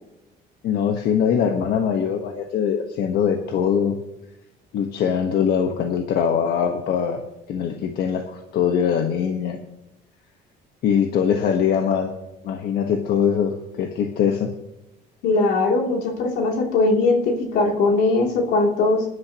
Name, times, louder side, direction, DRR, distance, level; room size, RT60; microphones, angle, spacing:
voice 1, 0.6-4.0 4.7-7.2 7.5-9.6 10.8-12.1 12.4-14.5, left 7 dB, 70° left, 4 dB, 1.3 m, -22 dB
voice 2, 15.2-19.1, left 3 dB, 90° left, 1 dB, 2.9 m, -20 dB
21.0 x 11.5 x 3.0 m, 0.89 s
cardioid pair, 110°, 17 cm